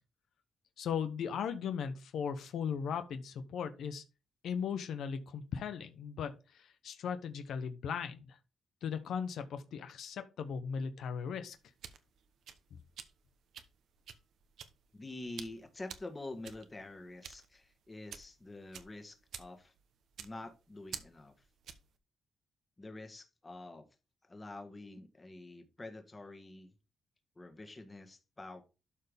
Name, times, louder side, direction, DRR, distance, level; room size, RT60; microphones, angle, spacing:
voice 1, 0.8-4.0 4.4-8.4 8.8-11.6, left 7 dB, 80° left, 1.0 m, -38 dB
sound 1, 11.5-22.0, right 8 dB, 80° right, 1.0 m, -51 dB
voice 2, 14.9-19.7 20.2-21.3 22.8-23.8 24.3-26.7 27.3-28.6, left 2 dB, 25° left, 1.7 m, -47 dB
12.0 x 4.6 x 3.5 m
cardioid pair, 100°, 0 cm